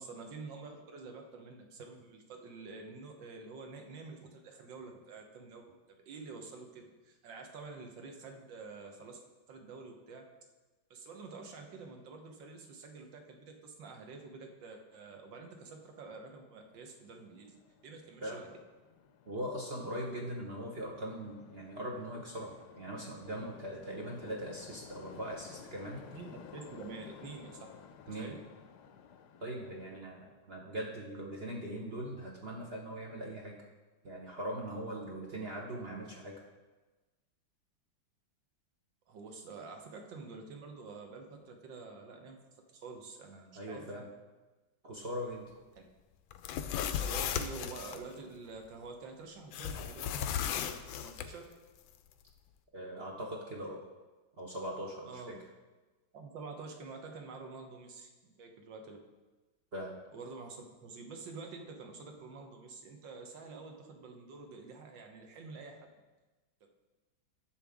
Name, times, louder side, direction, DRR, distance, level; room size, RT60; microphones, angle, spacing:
voice 1, 0.0-5.6 5.9-9.2 9.5-10.3 10.9-18.5 26.1-27.7 28.1-28.4 39.1-42.4 42.7-44.1 45.7-45.8 46.8-51.5 55.1-55.3 56.1-59.0 60.1-65.8 66.6-66.7, right 4 dB, 75° right, 3 dB, 1.7 m, -48 dB
sound 1, 16.5-30.0, left 7 dB, 70° left, 1.0 m, -55 dB
voice 2, 19.3-26.0 28.1-28.4 29.4-33.6 34.0-36.4 43.6-44.0 44.8-45.7 52.7-53.8 54.4-55.4 59.7-60.0, equal, 50° right, -1 dB, 0.8 m, -41 dB
sound 2, 46.3-48.0 49.5-51.3, left 9 dB, 90° left, 1.4 m, -35 dB
11.0 x 7.2 x 3.5 m, 1.2 s
omnidirectional pair, 2.1 m